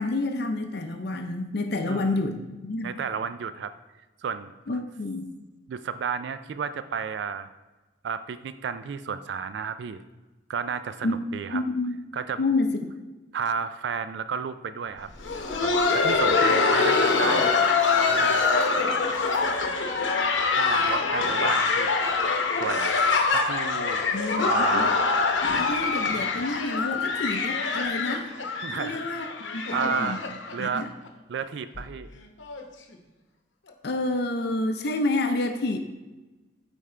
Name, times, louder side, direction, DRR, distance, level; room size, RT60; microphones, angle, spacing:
voice 1, 0.0-3.0 4.7-5.3 11.0-11.2 11.5-12.0 12.4-12.9 24.1-24.9 25.4-28.3 28.8-29.3 29.5-30.2 30.6-30.9 33.8-35.8, left 2 dB, 55° left, 5 dB, 0.5 m, -28 dB
voice 2, 1.9-2.2 2.8-3.7 4.2-4.5 5.7-7.5 8.0-10.0 10.5-11.6 12.1-12.4 13.3-15.1 15.6-17.6 18.1-18.5 20.4-21.9 22.6-23.0 23.3-24.0 24.4-25.1 28.6-29.0 29.7-30.2 30.5-30.9 31.3-32.1, right 6 dB, 65° right, 12 dB, 0.3 m, -32 dB
Laughter, 15.1-30.8 31.1-31.2 31.7-31.9 32.4-32.6 33.7-33.8, left 4 dB, 80° left, 0.8 m, -24 dB
8.6 x 3.5 x 4.3 m, 1.2 s
head